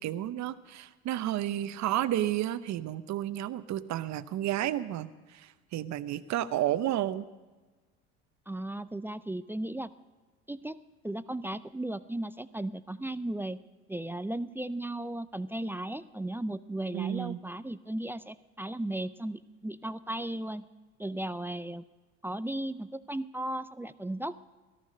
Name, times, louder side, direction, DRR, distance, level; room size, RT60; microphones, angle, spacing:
voice 1, 0.0-7.3 16.9-17.4, right 12 dB, 50° right, 13 dB, 0.9 m, -31 dB
voice 2, 8.5-9.9 10.5-10.8 11.0-13.6 13.9-20.7 21.0-21.8 22.2-24.5, right 1 dB, 5° right, 13 dB, 0.4 m, -36 dB
17.5 x 14.0 x 5.2 m, 1.3 s
hypercardioid pair, 75°, 35 cm